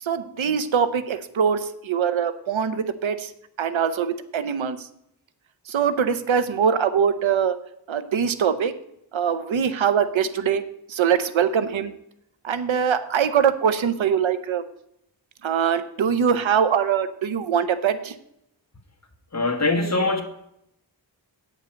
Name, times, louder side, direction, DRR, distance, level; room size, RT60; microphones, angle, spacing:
voice 1, 0.0-3.3 3.6-4.9 5.7-7.6 7.9-8.8 9.1-10.6 10.9-11.9 12.4-14.6 15.4-18.2, right 7 dB, 90° right, 12 dB, 0.7 m, -23 dB
voice 2, 19.3-20.2, left 2 dB, 35° left, 5 dB, 1.4 m, -22 dB
8.8 x 5.4 x 7.4 m, 0.79 s
wide cardioid pair, 90°, 45 cm